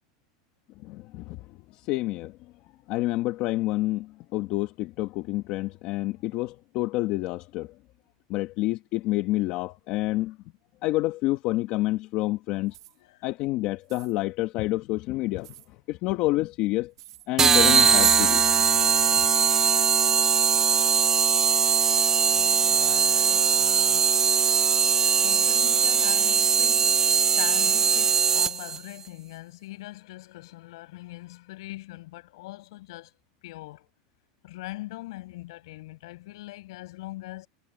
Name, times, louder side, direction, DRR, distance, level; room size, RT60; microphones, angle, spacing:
voice 1, 0.8-1.4 1.7-2.3 2.9-7.7 8.3-10.4 10.8-12.8 13.2-15.5 15.9-16.9 17.3-18.6, left 18 dB, 45° left, 1.1 m, -28 dB
sound 1, 12.7-13.0 13.8-14.2 15.4-15.7 16.9-17.3 18.2-18.5 19.3-19.6 20.5-20.8, right 16 dB, 85° right, 2.2 m, -50 dB
sound 2, 17.4-28.8, right 6 dB, 20° right, 0.4 m, -21 dB
voice 2, 22.3-24.1 25.2-33.1 33.4-33.9 34.4-37.5, left 19 dB, 75° left, 6.5 m, -41 dB
supercardioid pair, 145°, 3 cm